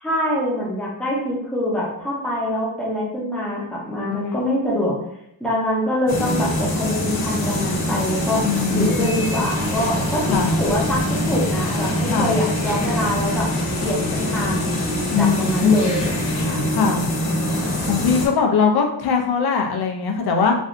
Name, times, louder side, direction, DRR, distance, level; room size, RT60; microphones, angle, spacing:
voice 1, 0.0-5.0 5.4-8.4 8.7-13.5 13.8-14.7 15.2-16.6, left 1 dB, ahead, -6 dB, 0.8 m, -24 dB
sound 1, 6.1-18.3, left 1 dB, 85° left, 1.0 m, -24 dB
voice 2, 8.5-9.1 10.3-10.5 12.1-12.4 15.1-15.8 16.7-17.1 17.8-20.6, left 5 dB, 50° left, 3 dB, 0.6 m, -20 dB
3.2 x 2.6 x 2.5 m, 0.77 s
wide cardioid pair, 160°, 48 cm